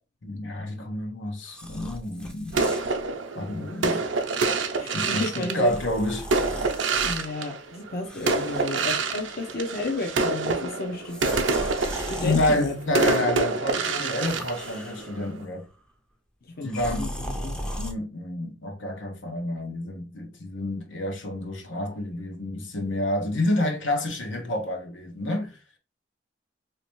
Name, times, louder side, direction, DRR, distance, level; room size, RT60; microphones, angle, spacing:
voice 1, 0.2-2.6 3.3-4.0 4.9-6.3 12.2-15.7 16.6-17.1 17.7-25.6, left 1 dB, 90° left, 1.0 m, -29 dB
sound 1, 1.5-3.0 3.7-3.9 5.5-7.3 8.0-9.5 9.7-10.2 11.0-13.2 13.9-15.3 16.7-17.9, equal, 5° left, 0.5 m, -37 dB
sound 2, 2.5-7.9 8.3-15.4, right 3 dB, 80° right, 0.6 m, -27 dB
voice 2, 4.7-5.7 7.0-11.2 12.1-12.7 16.6-17.6, left 2 dB, 55° left, 0.7 m, -32 dB
3.2 x 2.9 x 3.0 m
head